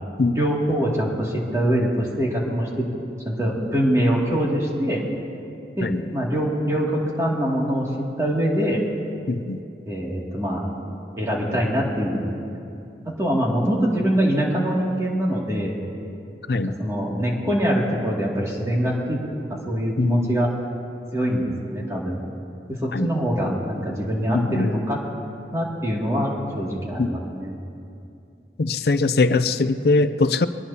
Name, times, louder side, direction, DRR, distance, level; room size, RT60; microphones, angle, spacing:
voice 1, 0.4-2.9 3.2-5.0 5.8-8.8 9.9-10.7 11.2-12.4 13.1-15.8 16.5-19.2 19.7-20.5 21.1-22.2 22.7-25.0 25.5-27.5, equal, 15° right, -4 dB, 2.5 m, -24 dB
voice 2, 9.3-9.6 16.5-16.8 20.0-20.4 22.9-23.1 24.3-24.7 27.0-27.1 28.6-30.5, left 3 dB, 60° left, 12 dB, 0.5 m, -21 dB
23.5 x 19.0 x 2.9 m, 2.6 s
head